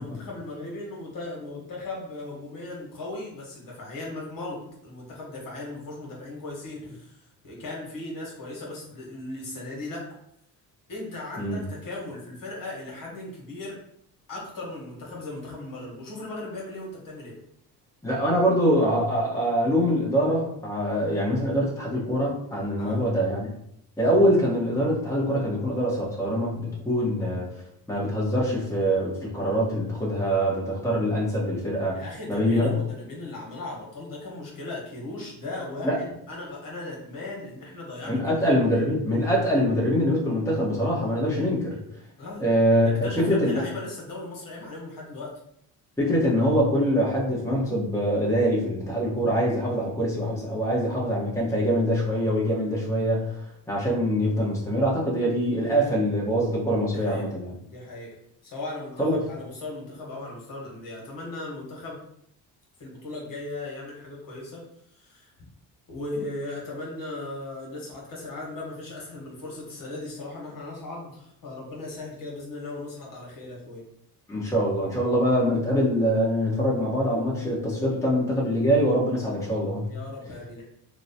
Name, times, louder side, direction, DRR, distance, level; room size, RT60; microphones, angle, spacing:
voice 1, 0.0-10.0 10.9-13.8 14.3-17.3 22.8-23.0 31.9-38.9 42.2-42.4 42.8-45.3 56.9-57.3 57.7-58.1 58.4-62.0 62.8-64.6 64.9-65.3 65.9-73.8 79.8-80.7, left 2 dB, 55° left, -3 dB, 1.5 m, -37 dB
voice 2, 18.0-23.5 24.0-27.5 27.9-32.0 32.3-32.7 35.8-36.0 38.0-41.8 42.4-43.6 46.0-57.5 59.0-59.2 74.3-79.9, equal, 5° left, -5 dB, 1.1 m, -24 dB
3.0 x 2.3 x 4.1 m, 0.73 s
cardioid pair, 100°, 40 cm